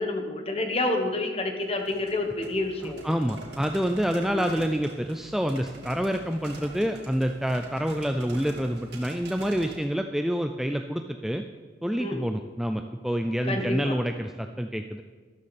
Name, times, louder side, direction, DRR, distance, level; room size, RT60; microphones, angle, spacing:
voice 1, 0.0-3.1 4.2-4.5 12.0-12.2 13.4-14.0, left 2 dB, 35° left, 4 dB, 1.4 m, -29 dB
sound 1, 1.6-9.8, right 1 dB, 70° right, 2.4 m, -45 dB
voice 2, 2.8-11.4 11.8-15.0, equal, ahead, 6 dB, 0.4 m, -27 dB
13.0 x 13.0 x 4.2 m, 1.5 s
head